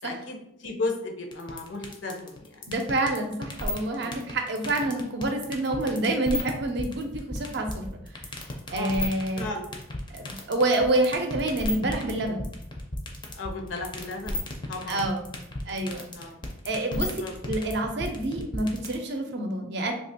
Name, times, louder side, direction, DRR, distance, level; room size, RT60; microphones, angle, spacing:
voice 1, 0.0-2.7 4.0-4.4 8.7-8.9 9.4-9.7 13.3-14.4 14.7-15.0 15.7-15.8 16.1-16.4 17.2-17.3, left 2 dB, 70° left, 2 dB, 0.6 m, -35 dB
sound 1, 1.3-18.9, left 2 dB, 25° left, 0.5 m, -33 dB
voice 2, 2.7-8.0 8.7-9.5 10.1-12.5 14.9-15.2 15.7-16.0 16.6-17.1 17.4-19.9, right 2 dB, 55° right, 4 dB, 0.5 m, -27 dB
2.9 x 2.3 x 4.1 m, 0.77 s
head